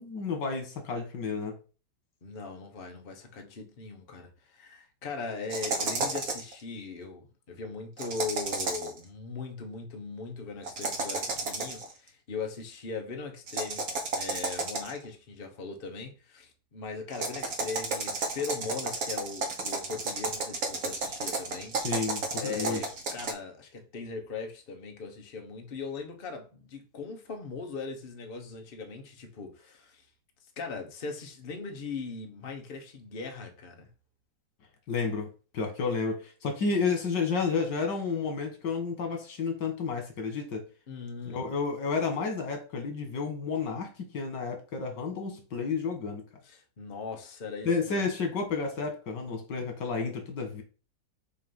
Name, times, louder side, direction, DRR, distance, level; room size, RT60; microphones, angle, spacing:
voice 1, 0.0-1.5 21.8-22.8 34.9-40.6 41.3-46.2 47.7-50.6, left 4 dB, 90° left, 2.2 m, -31 dB
voice 2, 2.2-13.9 14.1-21.8 22.4-30.1 30.6-33.9 40.9-41.4 46.4-48.1, left 4 dB, 35° left, 1.1 m, -39 dB
sound 1, 5.5-6.5 8.0-9.0 10.6-11.9 13.5-15.0 17.1-23.3, right 3 dB, 60° right, 1.6 m, -32 dB
6.8 x 2.8 x 5.4 m
omnidirectional pair, 1.8 m